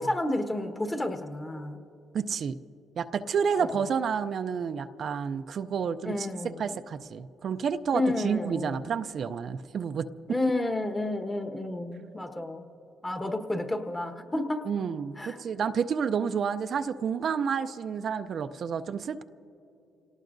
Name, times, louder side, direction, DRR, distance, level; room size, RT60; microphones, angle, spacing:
voice 1, 0.0-1.8 3.6-3.7 6.0-6.6 7.9-8.9 10.3-12.6 13.0-14.7 15.2-15.4, left 2 dB, 20° left, 5 dB, 1.3 m, -31 dB
voice 2, 2.1-2.5 3.0-6.3 6.6-10.0 14.7-19.2, right 6 dB, 55° right, 9 dB, 0.5 m, -30 dB
28.0 x 18.5 x 2.6 m, 2.8 s
cardioid pair, 90°, 0 cm